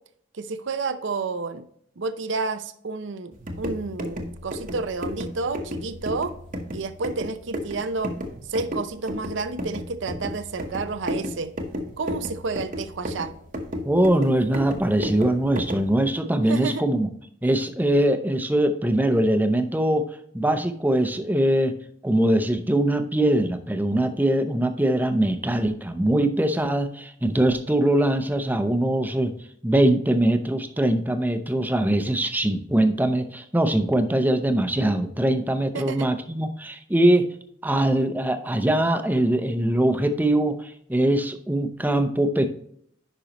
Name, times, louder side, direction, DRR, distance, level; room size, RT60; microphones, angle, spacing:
voice 1, 0.4-1.6 2.0-6.3 6.7-8.1 8.5-11.5 12.0-13.3 16.5-16.8 35.7-36.1, right 4 dB, 65° right, 11 dB, 0.6 m, -30 dB
sound 1, 3.3-15.9, equal, 45° right, 1.1 m, -33 dB
voice 2, 13.8-17.1 17.4-20.1 20.3-21.7 22.0-29.3 29.6-37.3 37.6-42.5, right 1 dB, 10° right, 8 dB, 0.7 m, -22 dB
10.0 x 5.5 x 3.0 m, 0.67 s
head